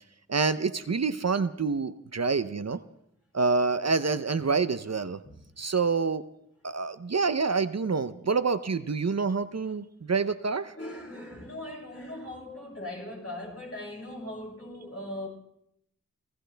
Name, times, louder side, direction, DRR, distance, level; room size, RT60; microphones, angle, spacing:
voice 1, 0.3-2.8 3.3-5.2 5.6-6.2 6.6-10.7, right 4 dB, 50° right, 0.7 m, -27 dB
voice 2, 10.7-15.3, left 1 dB, 50° left, 7.5 m, -39 dB
27.0 x 15.5 x 3.4 m
wide cardioid pair, 55°, 32 cm